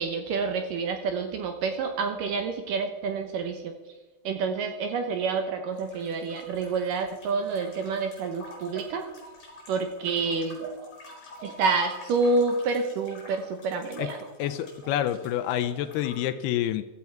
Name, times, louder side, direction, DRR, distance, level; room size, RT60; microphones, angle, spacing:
voice 1, 0.0-3.7 4.3-9.0 9.7-10.6 11.4-14.2, right 4 dB, 70° right, 6 dB, 2.2 m, -28 dB
sound 1, 5.7-16.3, equal, 35° left, 5.3 m, -46 dB
voice 2, 14.4-16.9, left 11 dB, 80° left, 10 dB, 2.5 m, -28 dB
15.0 x 13.0 x 4.5 m, 1.2 s
omnidirectional pair, 4.8 m